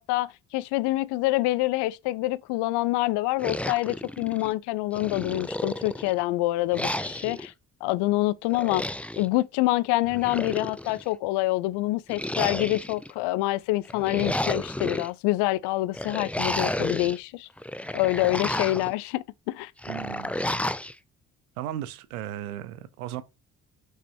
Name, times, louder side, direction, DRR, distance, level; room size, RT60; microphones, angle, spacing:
voice 1, 0.0-7.5 7.8-8.8 9.2-17.5 17.9-19.7, left 18 dB, 70° left, 0.6 m, -26 dB
sound 1, 3.4-4.5 4.9-6.2 6.7-7.5 8.5-9.3 10.1-11.0 12.1-13.1 13.9-15.1 15.9-17.2 17.6-18.9 19.8-20.9, left 1 dB, 5° left, 0.6 m, -31 dB
voice 2, 19.9-20.6 21.6-23.2, right 12 dB, 85° right, 0.8 m, -36 dB
5.8 x 5.6 x 4.5 m
hypercardioid pair, 45°, 42 cm